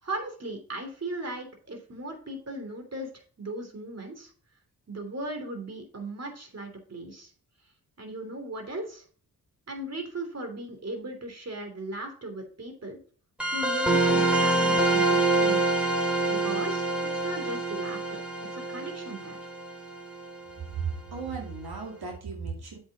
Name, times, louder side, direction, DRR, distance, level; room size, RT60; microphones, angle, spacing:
voice 1, 0.0-3.1 3.4-4.3 4.9-7.3 8.0-9.0 9.7-13.0 13.5-16.0 16.3-18.2 18.5-19.4, right 1 dB, 40° right, 4 dB, 3.1 m, -37 dB
sound 1, 13.4-20.5, right 2 dB, 5° right, 3.3 m, -26 dB
voice 2, 20.8-22.8, right 5 dB, 70° right, 0 dB, 2.6 m, -35 dB
7.9 x 6.5 x 4.2 m, 0.42 s
cardioid pair, 65°, 38 cm